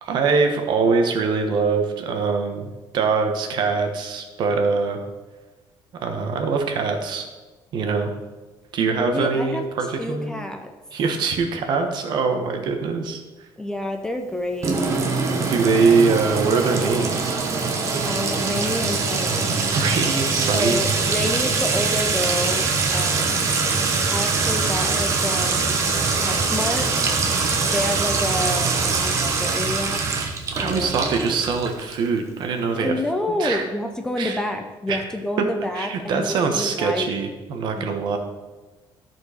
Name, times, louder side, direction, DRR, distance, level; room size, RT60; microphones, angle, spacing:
voice 1, 0.0-5.0 6.0-7.3 7.7-8.1 8.7-10.3 10.9-13.2 15.4-17.3 19.7-20.8 30.5-33.0 33.3-33.7 34.2-34.4 34.9-35.0 35.7-38.2, right 4 dB, 55° right, 5 dB, 1.2 m, -23 dB
voice 2, 8.9-9.7 10.0-10.7 13.6-15.0 18.0-19.6 20.5-23.5 24.1-25.8 26.2-26.9 27.6-30.0 30.6-31.3 32.7-37.1 37.8-37.9, left 1 dB, 5° left, 5 dB, 0.5 m, -28 dB
Sink (filling or washing) / Trickle dribble / Fill (with liquid), 14.6-32.1, right 4 dB, 35° right, 1.0 m, -23 dB
13.5 x 4.5 x 5.0 m, 1.2 s
cardioid pair, 170°, 9 cm